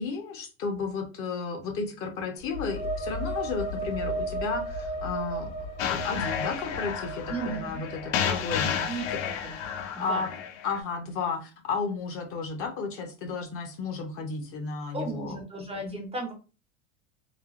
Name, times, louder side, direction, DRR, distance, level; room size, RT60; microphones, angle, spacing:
voice 1, 0.0-5.5 5.8-9.0 10.0-10.3 10.6-15.4, left 4 dB, 35° left, 4 dB, 0.6 m, -33 dB
sound 1, 2.4-10.0, right 1 dB, 60° left, 1.0 m, -35 dB
sound 2, 5.8-10.8, left 8 dB, 80° left, 0.6 m, -32 dB
voice 2, 7.3-7.8 8.2-8.4 8.9-9.5 10.0-10.2 14.9-16.3, right 3 dB, 15° right, 2 dB, 0.5 m, -35 dB
3.3 x 2.1 x 2.4 m, 0.33 s
supercardioid pair, 125°, 39 cm